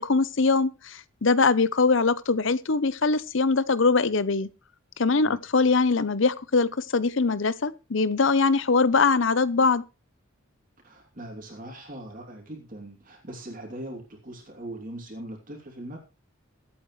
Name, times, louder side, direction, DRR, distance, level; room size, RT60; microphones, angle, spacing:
voice 1, 0.0-4.5 5.0-9.8, left 4 dB, 60° left, 0.7 m, -22 dB
voice 2, 10.8-16.0, right 1 dB, 40° right, 2.9 m, -40 dB
22.5 x 8.7 x 3.2 m
head